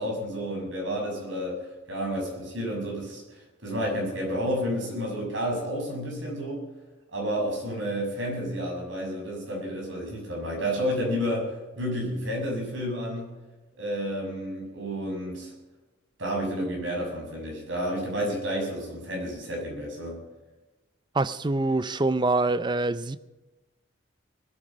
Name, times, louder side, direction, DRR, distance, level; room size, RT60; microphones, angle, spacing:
voice 1, 0.0-1.6 1.9-6.6 7.1-13.3 13.8-15.5 16.2-20.2, equal, 75° right, 6.6 m, -30 dB
voice 2, 21.1-23.2, right 2 dB, 25° right, 0.5 m, -25 dB
20.0 x 9.1 x 6.3 m
head